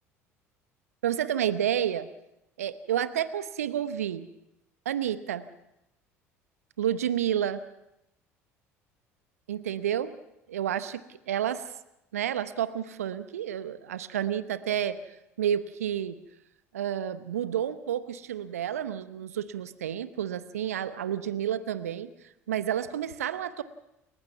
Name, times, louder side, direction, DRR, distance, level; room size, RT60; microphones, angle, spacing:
voice 1, 1.0-2.1 2.6-4.3 4.8-5.5 6.8-7.6 9.5-10.1 10.5-11.7 12.1-16.2 16.7-22.1 22.5-23.6, right 10 dB, 75° right, 13 dB, 0.9 m, -30 dB
29.5 x 15.0 x 5.9 m, 0.87 s
figure-of-eight pair, 60°, 8 cm